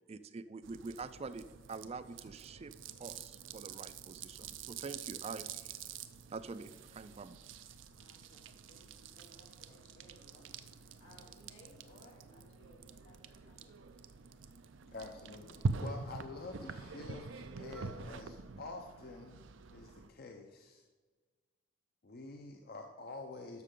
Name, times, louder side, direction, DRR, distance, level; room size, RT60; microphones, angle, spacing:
voice 1, 0.1-2.7 3.0-5.7 6.3-7.4, right 4 dB, 35° right, 12 dB, 0.4 m, -46 dB
sound 1, 0.6-20.1, right 4 dB, 85° right, 0.5 m, -45 dB
voice 2, 8.0-13.7, equal, 90° left, -3 dB, 2.9 m, -62 dB
voice 3, 14.9-19.4 19.7-20.8 22.0-23.6, left 3 dB, 55° left, 3 dB, 0.7 m, -48 dB
11.5 x 6.5 x 3.7 m, 1.4 s
head